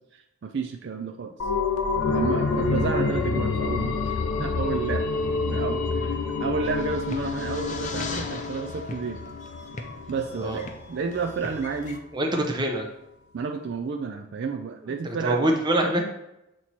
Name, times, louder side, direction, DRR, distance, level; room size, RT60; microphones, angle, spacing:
voice 1, 0.1-1.3 2.1-4.1 4.4-5.1 5.5-9.2 10.1-12.0 13.3-15.4, right 5 dB, 50° right, 5 dB, 0.3 m, -31 dB
sound 1, 1.4-10.7 11.1-11.2, left 4 dB, 80° left, 0.6 m, -28 dB
sound 2, 6.6-12.0, left 3 dB, 35° left, 0.5 m, -39 dB
voice 2, 12.1-12.9 15.0-16.0, right 1 dB, 20° right, 2 dB, 0.7 m, -24 dB
7.5 x 3.0 x 4.1 m, 0.88 s
head